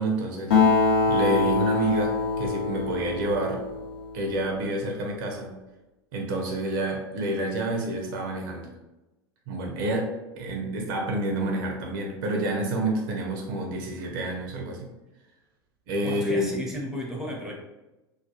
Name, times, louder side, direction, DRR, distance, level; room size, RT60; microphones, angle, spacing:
voice 1, 0.0-3.6 4.1-5.6 6.1-8.7 9.5-14.9 15.9-16.5, right 1 dB, 55° right, 1 dB, 0.5 m, -28 dB
Acoustic guitar, 0.5-4.3, left 4 dB, 75° left, 0.7 m, -24 dB
voice 2, 16.0-17.5, equal, 5° right, -2 dB, 0.7 m, -33 dB
2.4 x 2.1 x 2.9 m, 1.0 s
figure-of-eight pair, 80°, 13 cm